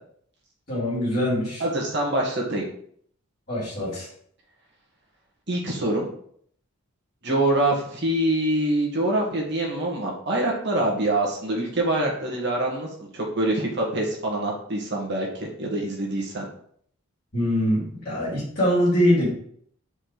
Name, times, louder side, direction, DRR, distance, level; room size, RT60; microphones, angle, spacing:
voice 1, 0.7-1.6 3.5-4.1 17.3-19.3, equal, 40° left, -9 dB, 2.7 m, -23 dB
voice 2, 1.6-2.7 5.5-6.1 7.2-16.4, right 1 dB, 50° right, -1 dB, 1.6 m, -25 dB
4.9 x 4.4 x 4.4 m, 0.63 s
head